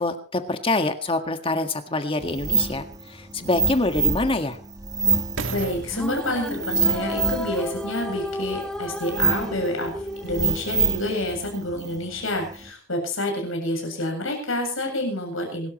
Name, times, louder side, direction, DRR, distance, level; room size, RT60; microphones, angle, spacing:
voice 1, 0.0-4.6, left 2 dB, 25° left, 7 dB, 1.7 m, -25 dB
sound 1, 2.2-12.7, right 4 dB, 20° right, 1.5 m, -27 dB
sound 2, 2.4-2.5 3.2-8.5 9.1-9.2, right 4 dB, 80° right, 2.0 m, -38 dB
voice 2, 5.5-9.9 10.2-15.7, left 1 dB, 85° left, 3 dB, 7.9 m, -28 dB
sound 3, 5.8-11.3, left 1 dB, 5° left, 0.9 m, -33 dB
26.5 x 13.0 x 3.1 m, 0.36 s
head